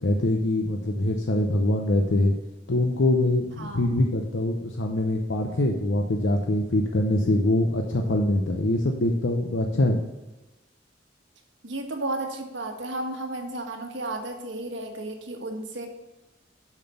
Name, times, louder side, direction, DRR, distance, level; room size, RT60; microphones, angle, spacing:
voice 1, 0.0-2.4 2.7-10.0, left 1 dB, 90° left, 3 dB, 0.8 m, -24 dB
voice 2, 3.6-3.9 11.6-15.9, right 2 dB, 75° right, 4 dB, 1.5 m, -33 dB
7.3 x 6.0 x 6.8 m, 1.1 s
head